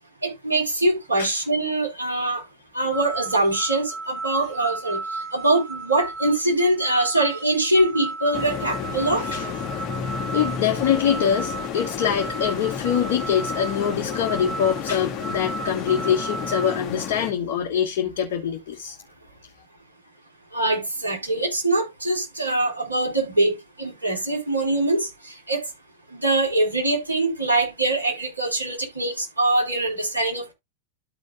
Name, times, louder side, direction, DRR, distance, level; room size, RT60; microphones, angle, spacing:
voice 1, 0.2-2.4 2.7-5.0 5.3-9.3 20.5-25.6 26.1-30.5, right 2 dB, 80° right, 4.2 m, -23 dB
sound 1, 2.9-16.8, right 4 dB, 35° right, 1.4 m, -34 dB
sound 2, 8.3-17.3, left 8 dB, 30° left, 2.0 m, -31 dB
voice 2, 9.2-9.5 10.3-19.0, left 8 dB, 50° left, 1.5 m, -24 dB
13.0 x 5.0 x 2.3 m
figure-of-eight pair, 90°, 0 cm